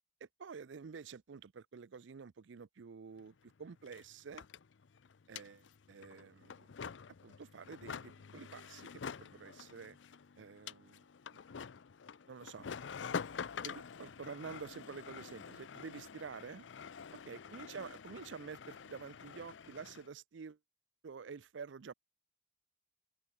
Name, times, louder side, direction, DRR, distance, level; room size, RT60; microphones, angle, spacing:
voice 1, 0.2-4.4 5.3-6.7 7.2-8.9 9.2-10.0 10.4-11.1 12.3-12.7 13.6-16.7 17.3-20.6 21.0-21.9, right 5 dB, 75° right, 0.5 m, -49 dB
sound 1, 3.2-3.3 3.5-20.1, left 6 dB, 75° left, 0.6 m, -47 dB
open air
head